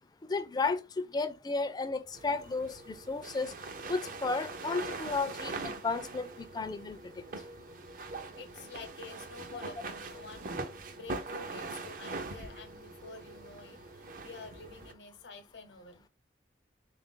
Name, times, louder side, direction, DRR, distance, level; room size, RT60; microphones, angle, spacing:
voice 1, 0.2-3.5 3.9-7.2, left 3 dB, 25° left, 0.4 m, -33 dB
sound 1, 2.1-14.9, right 3 dB, 50° right, 0.5 m, -42 dB
voice 2, 8.4-10.6 10.9-16.0, left 4 dB, 85° left, 0.7 m, -49 dB
3.8 x 2.4 x 3.7 m
head